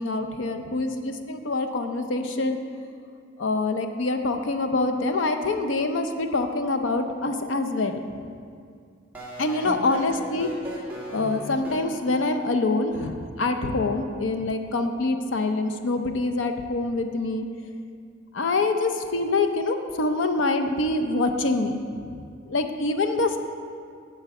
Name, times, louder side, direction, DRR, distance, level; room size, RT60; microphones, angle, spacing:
voice 1, 0.0-2.6 3.4-8.0 9.4-10.5 11.1-17.5 18.3-21.8 22.5-23.4, left 2 dB, 70° left, 7 dB, 0.6 m, -25 dB
sound 1, 9.1-11.8, equal, 10° right, 1.3 m, -37 dB
9.0 x 4.6 x 7.0 m, 2.3 s
head